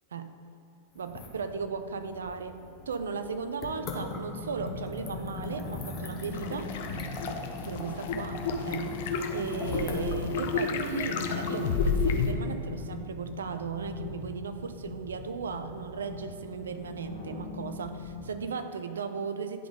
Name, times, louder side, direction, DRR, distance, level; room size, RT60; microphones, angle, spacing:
sound 1, 0.9-12.8, left 3 dB, 30° left, 1.0 m, -44 dB
voice 1, 0.9-6.8 7.6-9.0 9.3-19.7, right 5 dB, 70° right, 9 dB, 0.4 m, -36 dB
sound 2, 3.8-18.3, left 3 dB, 75° left, 1.6 m, -40 dB
sound 3, 6.3-12.3, left 5 dB, 55° left, 0.5 m, -31 dB
10.5 x 3.9 x 3.7 m, 3.0 s
figure-of-eight pair, 90°, 0 cm